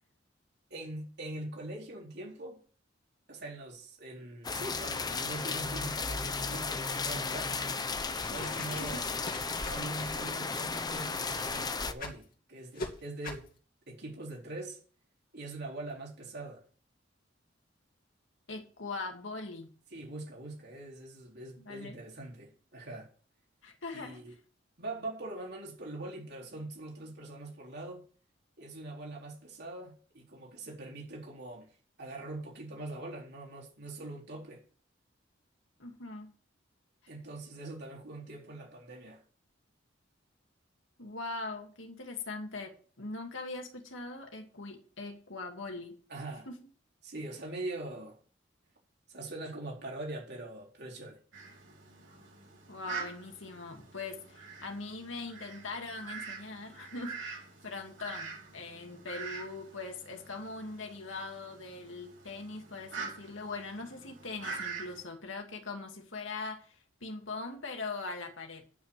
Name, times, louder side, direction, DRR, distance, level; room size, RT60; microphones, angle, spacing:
voice 1, 0.7-2.6 3.3-7.5 8.3-9.0 9.7-13.5 13.9-14.8 15.3-16.6 19.9-23.1 23.9-24.4 24.8-28.0 28.6-31.7 32.0-34.6 37.1-39.2 46.1-46.5 47.0-48.2 49.1-51.2, right 2 dB, 60° right, 4.0 m, -43 dB
sound 1, 4.4-11.9, left 4 dB, 20° left, 0.8 m, -34 dB
sound 2, 8.0-12.2 12.7-12.9 13.2-13.5, left 3 dB, 50° left, 2.6 m, -44 dB
voice 2, 8.3-9.0 18.5-19.7 21.6-22.0 23.6-24.2 35.8-36.3 41.0-46.0 46.5-46.6 52.7-66.8 67.0-68.6, left 3 dB, 80° left, 2.5 m, -41 dB
Fowl, 51.3-65.0, right 5 dB, 75° right, 6.6 m, -45 dB
9.9 x 6.4 x 8.4 m
head